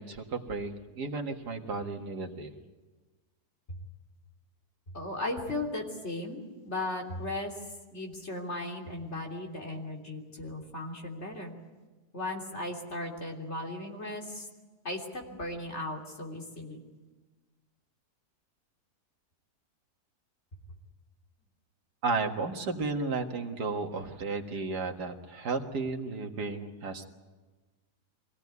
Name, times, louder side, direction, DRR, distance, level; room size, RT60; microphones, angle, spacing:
voice 1, 0.0-2.5 22.0-27.1, right 3 dB, 90° right, 3 dB, 2.3 m, -33 dB
voice 2, 4.9-7.5 7.9-11.5 12.1-14.5 14.8-16.8, left 2 dB, 45° left, 0 dB, 3.6 m, -36 dB
25.0 x 17.5 x 9.5 m, 1.3 s
omnidirectional pair, 1.7 m